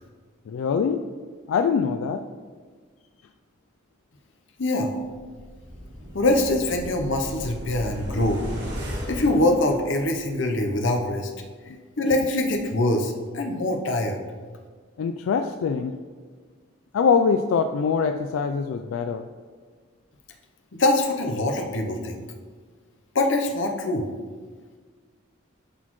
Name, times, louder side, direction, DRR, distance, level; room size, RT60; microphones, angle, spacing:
voice 1, 0.5-1.1 1.5-2.2 11.7-11.8 15.0-16.0 16.9-19.3, left 6 dB, 90° left, 8 dB, 0.3 m, -23 dB
voice 2, 4.6-4.9 6.1-8.4 9.1-11.3 12.0-14.2 20.7-22.2 23.1-24.1, left 1 dB, 70° left, 4 dB, 0.8 m, -23 dB
sound 1, 5.2-10.3 10.7-10.8, equal, 55° right, 1.6 m, -36 dB
11.0 x 4.2 x 3.1 m, 1.5 s
head